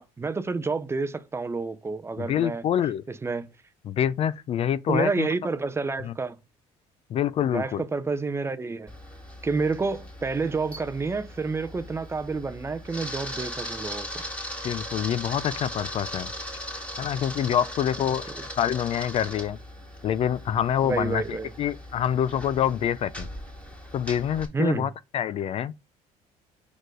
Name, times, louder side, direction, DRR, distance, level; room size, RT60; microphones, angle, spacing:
voice 1, 0.0-2.6 3.1-3.5 4.9-6.4 7.5-8.9 9.4-14.2 18.3-18.4 20.8-21.5 24.5-24.9, right 4 dB, 20° right, 0.6 m, -29 dB
voice 2, 2.2-3.0 3.9-5.3 6.0-6.1 7.1-7.8 14.6-16.3 17.0-18.2 18.6-19.6 20.0-23.3 23.9-25.7, left 10 dB, 45° left, 0.4 m, -26 dB
Camera, 8.9-24.5, equal, 10° left, 2.1 m, -38 dB
4.8 x 4.4 x 5.0 m
cardioid pair, 105°, 14 cm